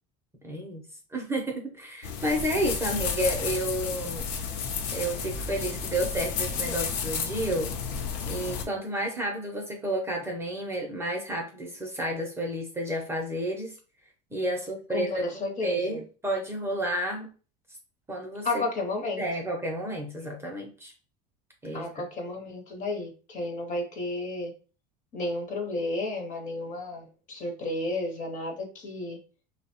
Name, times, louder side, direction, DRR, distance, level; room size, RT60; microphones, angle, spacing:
voice 1, 0.4-0.8 1.1-4.3 4.9-7.7 8.3-13.7 14.3-15.3 15.6-17.3 18.1-18.6 19.2-20.9 21.6-22.1, right 1 dB, 15° right, 0 dB, 0.5 m, -31 dB
sound 1, 2.0-8.6, left 6 dB, 75° left, 0.6 m, -32 dB
voice 2, 14.9-16.0 18.4-19.2 21.7-24.5 25.1-29.2, left 2 dB, 40° left, 3 dB, 0.7 m, -32 dB
2.6 x 2.1 x 2.8 m, 0.36 s
supercardioid pair, 130°, 21 cm